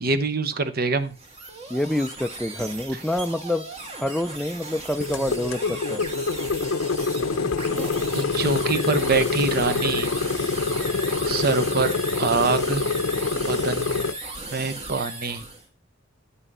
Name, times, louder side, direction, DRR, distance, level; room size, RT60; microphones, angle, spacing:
voice 1, 0.0-1.2 8.1-10.1 11.3-12.8 13.5-14.1 14.5-15.5, right 4 dB, 50° right, 12 dB, 0.9 m, -25 dB
sound 1, 1.0-15.6, right 2 dB, 30° right, 1.7 m, -36 dB
voice 2, 1.7-3.7 4.0-6.1, left 1 dB, ahead, 7 dB, 0.4 m, -27 dB
sound 2, 5.0-14.1, left 4 dB, 80° left, 0.6 m, -26 dB
9.8 x 5.7 x 5.4 m, 0.34 s
head